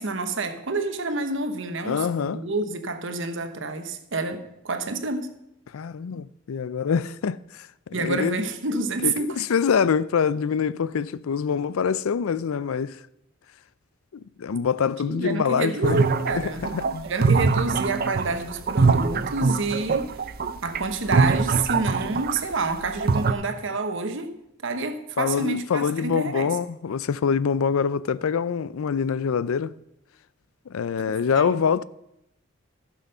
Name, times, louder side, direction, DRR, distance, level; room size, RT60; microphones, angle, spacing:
voice 1, 0.0-5.3 7.9-9.5 15.1-16.6 17.0-20.1 20.6-24.3 24.6-26.6 31.0-31.6, right 3 dB, 60° right, 1.1 m, -28 dB
voice 2, 1.8-2.4 5.7-8.4 9.0-13.0 14.1-16.0 16.3-17.1 25.2-29.7 30.7-31.8, left 6 dB, 90° left, 0.4 m, -25 dB
sound 1, 15.8-22.5 22.9-23.3, right 4 dB, 45° right, 0.5 m, -23 dB
15.0 x 6.3 x 5.5 m
head